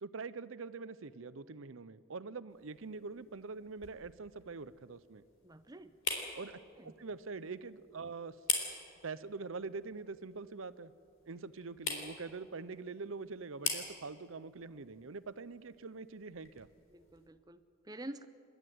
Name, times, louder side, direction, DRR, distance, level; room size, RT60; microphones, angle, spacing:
voice 1, 0.0-5.2 6.4-8.4 9.0-10.9 11.3-16.7, right 4 dB, 80° right, 16 dB, 0.7 m, -44 dB
sound 1, 2.5-17.3, left 5 dB, 80° left, 3.8 m, -44 dB
voice 2, 5.4-5.9 6.8-6.9 16.9-18.2, right 1 dB, 20° right, 12 dB, 0.6 m, -48 dB
29.0 x 12.0 x 9.3 m, 2.5 s
head